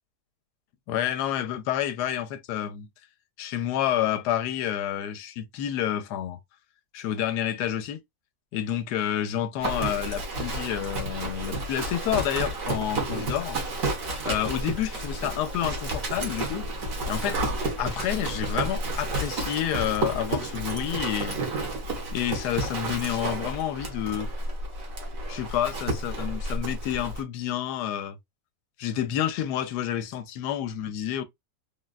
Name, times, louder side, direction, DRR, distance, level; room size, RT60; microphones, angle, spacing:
voice 1, 0.9-2.9 3.4-6.4 6.9-8.0 8.5-13.6 14.2-16.7 17.1-21.4 22.1-24.3 25.3-28.2 28.8-31.2, left 11 dB, 80° left, 1.1 m, -29 dB
Livestock farm animals working animals, 9.6-27.2, right 2 dB, 60° right, 1.4 m, -31 dB
3.7 x 2.2 x 2.3 m
omnidirectional pair, 1.7 m